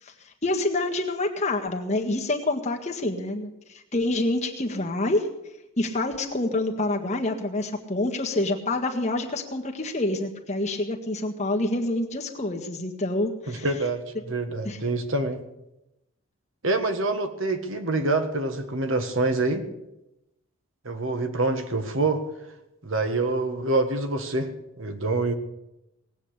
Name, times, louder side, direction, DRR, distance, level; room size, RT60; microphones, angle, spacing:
voice 1, 0.0-5.3 5.8-13.7 14.6-14.8, left 2 dB, 35° left, 2 dB, 1.7 m, -27 dB
voice 2, 13.5-15.4 16.6-19.7 20.8-22.2 22.8-24.5 24.8-25.3, right 2 dB, 65° right, 7 dB, 1.6 m, -26 dB
18.5 x 8.5 x 8.4 m, 0.90 s
head